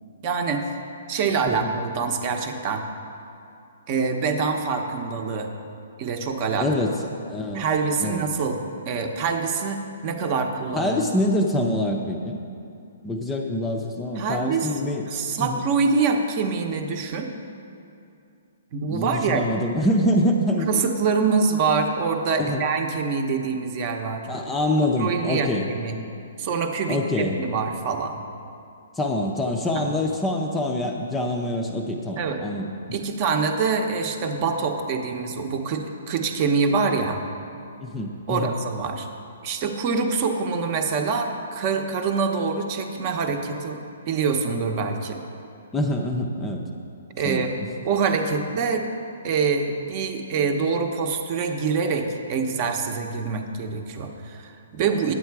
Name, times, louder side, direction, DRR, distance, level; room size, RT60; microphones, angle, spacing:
voice 1, 0.2-0.6 1.1-2.8 3.9-5.5 6.0-6.7 7.5-8.6 8.9-10.9 14.2-14.7 15.1-17.3 18.7-19.5 20.7-24.2 25.0-25.9 26.4-28.2 29.8-29.9 32.2-32.4 32.9-37.2 38.3-39.1 39.4-43.8 44.1-45.2 47.2-47.5 47.8-48.9 49.2-55.1, right 5 dB, 35° right, 4 dB, 0.8 m, -25 dB
voice 2, 6.6-6.9 7.3-7.6 8.0-8.3 10.7-12.4 13.0-15.1 15.4-15.6 18.9-20.7 22.4-22.6 24.3-25.7 26.9-27.4 29.0-32.7 37.8-38.5 45.7-46.7 47.2-47.4, left 1 dB, 10° left, 2 dB, 0.6 m, -25 dB
9.7 x 7.8 x 4.7 m, 2.6 s
hypercardioid pair, 150°, 0 cm